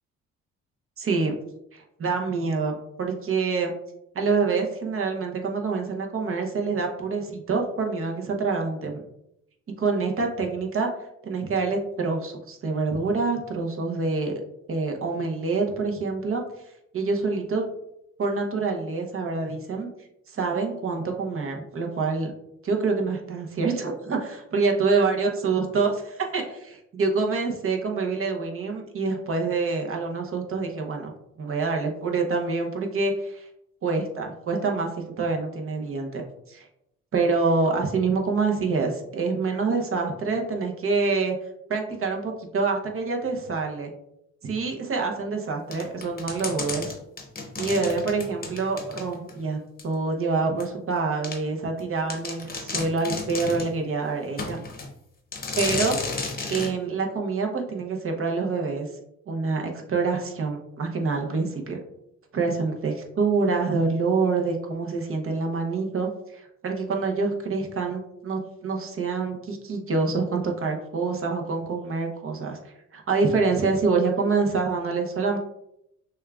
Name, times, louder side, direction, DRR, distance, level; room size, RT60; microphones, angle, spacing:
voice 1, 1.0-1.4 1.7-3.7 4.1-9.0 9.8-10.9 11.2-14.3 14.7-16.4 16.9-17.6 18.2-19.9 20.3-22.3 22.6-31.1 31.4-33.5 33.8-34.9 35.2-36.7 37.1-41.4 41.7-43.9 44.4-46.9 47.6-49.6 49.8-54.6 55.6-56.0 56.5-58.9 59.3-61.8 62.3-75.4, right 4 dB, 45° right, 2 dB, 0.9 m, -26 dB
sound 1, 45.7-49.4 49.8-49.9 50.6-50.7 51.2-51.4 51.8-51.9 52.1-53.7 54.4-54.9 55.3-56.7, left 3 dB, 30° left, 0.8 m, -32 dB
6.3 x 2.3 x 2.4 m, 0.81 s
cardioid pair, 90°, 30 cm